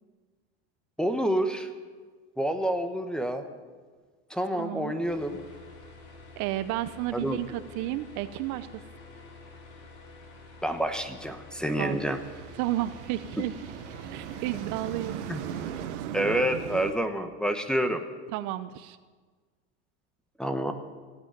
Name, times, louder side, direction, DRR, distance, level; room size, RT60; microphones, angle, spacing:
voice 1, 1.0-1.7 2.4-3.4 4.3-5.4 7.1-7.4 10.6-12.2 15.3-15.4 16.1-18.0 20.4-20.7, right 1 dB, ahead, 8 dB, 1.0 m, -28 dB
voice 2, 4.5-4.9 6.4-8.8 11.8-12.0 12.5-13.5 14.1-15.2 18.3-19.0, right 15 dB, 55° right, 13 dB, 0.7 m, -32 dB
sound 1, 5.1-15.9, left 3 dB, 65° left, 3.9 m, -49 dB
sound 2, 11.6-16.9, right 10 dB, 80° right, 1.2 m, -38 dB
16.0 x 8.5 x 9.0 m, 1.5 s
supercardioid pair, 130°, 35 cm